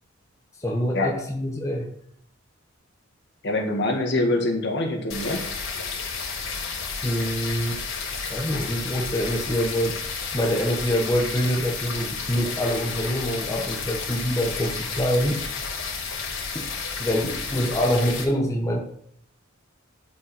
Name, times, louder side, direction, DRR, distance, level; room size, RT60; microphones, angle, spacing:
voice 1, 0.6-1.9 7.0-7.8 8.3-15.4 16.5-16.7 17.0-18.8, equal, 15° left, -1 dB, 1.2 m, -25 dB
voice 2, 3.4-5.4, left 2 dB, 60° left, 3 dB, 2.0 m, -24 dB
sound 1, 5.1-18.2, left 5 dB, 85° left, 3.5 m, -32 dB
12.0 x 5.4 x 6.0 m, 0.67 s
head